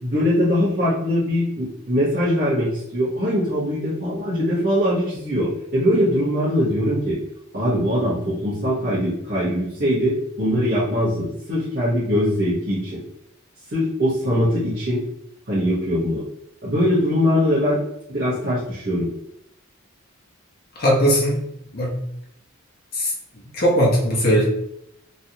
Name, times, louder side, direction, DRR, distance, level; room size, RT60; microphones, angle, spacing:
voice 1, 0.0-7.2 7.5-13.0 13.7-15.0 15.5-16.2 16.6-17.8 18.1-19.1, equal, 50° right, -11 dB, 1.1 m, -22 dB
voice 2, 20.8-21.4 21.7-21.9 22.9-23.1 23.5-24.5, equal, 45° left, -4 dB, 0.9 m, -18 dB
3.2 x 2.6 x 2.7 m, 0.78 s
head